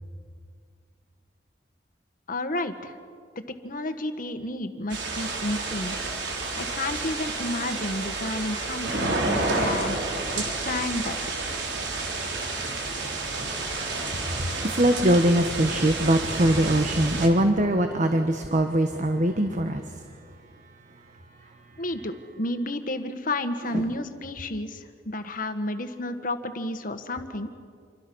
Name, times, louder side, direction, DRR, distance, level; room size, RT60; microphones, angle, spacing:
voice 1, 2.3-2.9 3.6-6.3 6.6-10.0 10.3-11.2 21.8-27.5, left 1 dB, 50° left, 8 dB, 1.7 m, -31 dB
sound 1, 4.9-17.3, right 3 dB, 80° right, 3.8 m, -30 dB
voice 2, 14.4-19.8 23.7-23.8, right 1 dB, 45° right, 6 dB, 1.3 m, -22 dB
27.5 x 24.5 x 6.3 m, 2.1 s
head